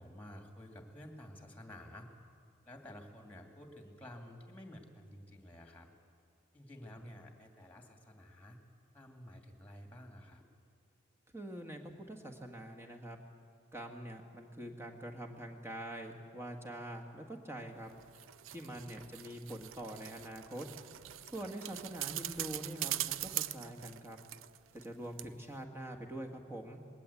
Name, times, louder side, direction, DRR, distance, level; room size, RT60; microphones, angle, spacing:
voice 1, 0.0-2.1 2.7-5.9 6.5-8.6 8.9-10.4 18.5-18.8 21.4-21.5, left 1 dB, 10° left, 3 dB, 2.3 m, -52 dB
voice 2, 11.3-13.2 13.7-17.9 18.5-20.7 21.3-24.2 24.7-26.8, right 1 dB, 15° right, 2 dB, 1.8 m, -45 dB
sound 1, 17.9-24.9 25.2-25.3, right 13 dB, 85° right, 0.5 m, -42 dB
21.0 x 18.0 x 8.5 m, 2.4 s
head